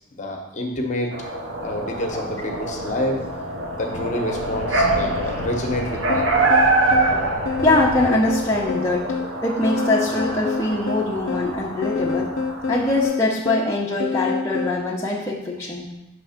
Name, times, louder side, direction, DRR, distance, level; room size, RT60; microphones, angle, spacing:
voice 1, 0.1-1.1 1.6-3.2 3.8-6.2, left 1 dB, 40° left, 1 dB, 0.9 m, -27 dB
sound 1, 1.1-13.0, right 2 dB, 85° right, 1.0 m, -25 dB
sound 2, 6.1-14.8, left 4 dB, 90° left, 0.4 m, -28 dB
voice 2, 7.1-9.1 9.4-12.3 12.7-15.9, left 2 dB, 15° left, -5 dB, 0.7 m, -23 dB
6.0 x 3.4 x 5.8 m, 0.94 s
head